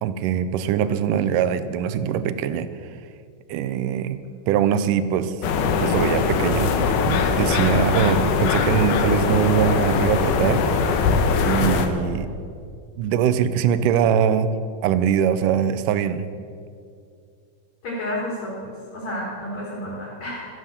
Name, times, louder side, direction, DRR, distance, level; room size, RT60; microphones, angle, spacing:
voice 1, 0.0-2.7 3.5-4.2 4.5-5.4 5.8-6.7 7.1-10.6 11.4-12.3 13.0-14.5 14.8-16.3, right 8 dB, 80° right, 12 dB, 2.2 m, -22 dB
sound 1, 5.4-11.9, left 5 dB, 75° left, 2.5 m, -21 dB
voice 2, 17.8-20.5, left 1 dB, 55° left, -6 dB, 5.3 m, -31 dB
13.0 x 11.0 x 6.7 m, 2.3 s
omnidirectional pair, 3.8 m